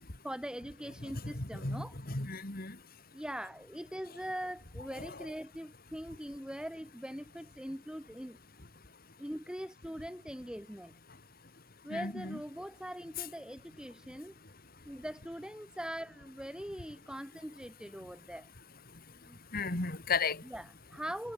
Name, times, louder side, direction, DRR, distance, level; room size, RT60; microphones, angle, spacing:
voice 1, 0.2-1.9 3.1-8.4 9.2-10.9 11.8-14.3 14.9-18.5 19.2-19.4 20.4-21.3, equal, 5° right, 1.9 m, -42 dB
voice 2, 1.6-2.7 11.9-12.4 19.5-20.4, left 4 dB, 45° left, 2.6 m, -34 dB
head